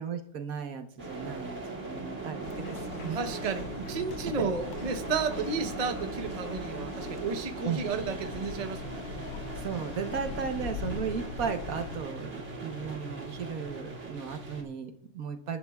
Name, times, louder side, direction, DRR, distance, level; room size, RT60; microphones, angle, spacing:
voice 1, 0.0-3.2 4.4-4.5 5.4-5.7 7.6-7.9 9.6-15.6, right 6 dB, 70° right, 7 dB, 1.3 m, -36 dB
sound 1, 1.0-14.6, right 3 dB, 50° right, 3.0 m, -39 dB
sound 2, 2.4-12.0, left 6 dB, 85° left, 1.4 m, -42 dB
voice 2, 3.1-9.1 12.4-12.5, right 5 dB, 30° right, 6 dB, 0.8 m, -33 dB
23.5 x 11.0 x 2.3 m, 0.71 s
omnidirectional pair, 1.6 m